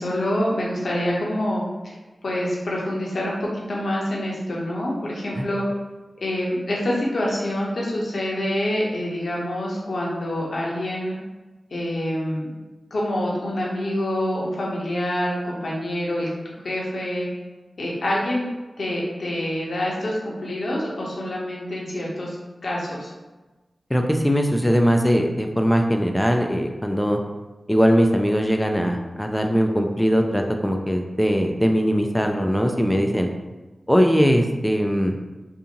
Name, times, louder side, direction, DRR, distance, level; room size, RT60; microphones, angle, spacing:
voice 1, 0.0-2.0 2.2-5.6 6.2-11.1 11.7-12.5 12.9-17.3 17.8-18.5 18.8-22.4 22.6-23.1, left 1 dB, 75° left, -4 dB, 0.7 m, -26 dB
voice 2, 23.9-27.2 27.7-33.3 33.9-35.2, equal, 5° left, 3 dB, 0.4 m, -20 dB
2.6 x 2.4 x 2.8 m, 1.2 s
cardioid pair, 45°, 0 cm